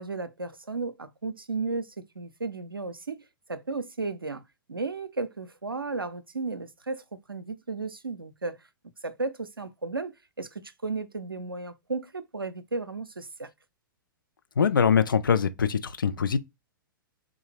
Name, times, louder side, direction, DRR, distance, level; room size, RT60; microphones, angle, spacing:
voice 1, 0.0-3.2 3.5-4.4 4.7-8.6 9.0-13.5, right 3 dB, 85° right, 0.5 m, -34 dB
voice 2, 14.6-16.4, left 6 dB, 70° left, 0.6 m, -23 dB
3.8 x 2.6 x 4.7 m
figure-of-eight pair, 110°, 12 cm